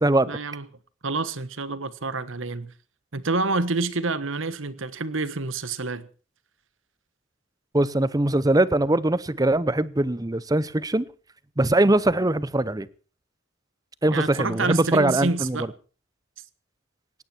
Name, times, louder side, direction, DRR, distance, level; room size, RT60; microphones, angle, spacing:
voice 1, 0.2-0.6 1.0-2.7 3.1-6.1 14.1-15.7, right 3 dB, 65° right, 1.4 m, -28 dB
voice 2, 7.7-11.1 11.6-12.9 14.0-15.6, right 1 dB, 15° right, 0.7 m, -21 dB
18.5 x 17.0 x 4.4 m
head